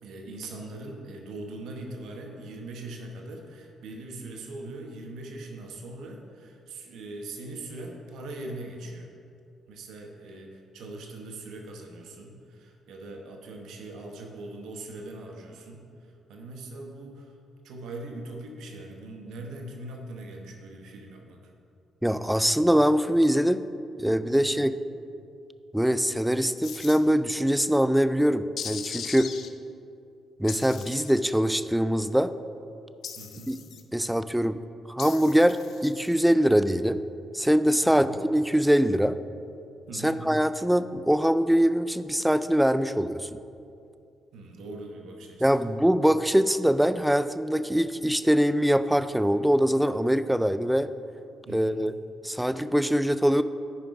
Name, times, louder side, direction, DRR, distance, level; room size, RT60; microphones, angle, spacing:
voice 1, 0.0-9.1 9.7-17.3 17.6-21.5 24.3-24.7 33.2-33.6 37.8-38.2 39.9-40.3 44.3-45.6 51.4-51.9, right 2 dB, 80° right, 2 dB, 1.0 m, -41 dB
voice 2, 22.0-23.7 24.0-24.7 25.7-29.3 30.4-32.3 33.5-33.6 33.9-34.6 34.9-37.0 37.3-39.2 40.0-43.3 45.4-50.9 51.5-51.9 52.2-53.4, equal, 5° right, 13 dB, 0.3 m, -23 dB
sound 1, 26.6-27.0 28.6-29.5 30.5-31.3 33.0-33.8 35.0-36.1, left 8 dB, 65° left, 0.6 m, -39 dB
10.5 x 5.1 x 4.7 m, 2.5 s
cardioid pair, 90°, 0 cm